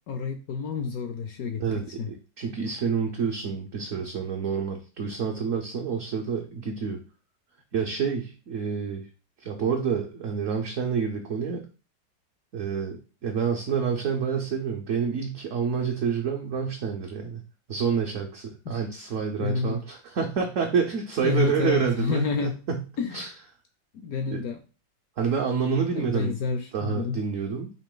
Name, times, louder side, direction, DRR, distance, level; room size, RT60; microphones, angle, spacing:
voice 1, 0.1-1.6 2.0-2.1 18.7-18.8 19.4-19.8 21.2-22.6 23.0-23.3 24.0-24.6 25.9-27.2, left 5 dB, 75° left, 6 dB, 0.8 m, -29 dB
voice 2, 1.6-7.0 7.7-9.1 9.4-11.6 12.5-17.4 17.7-22.8 23.1-23.3 24.3-24.4 25.2-26.3 26.7-27.7, right 6 dB, 65° right, 2 dB, 0.8 m, -28 dB
4.8 x 2.9 x 3.7 m, 0.33 s
omnidirectional pair, 2.0 m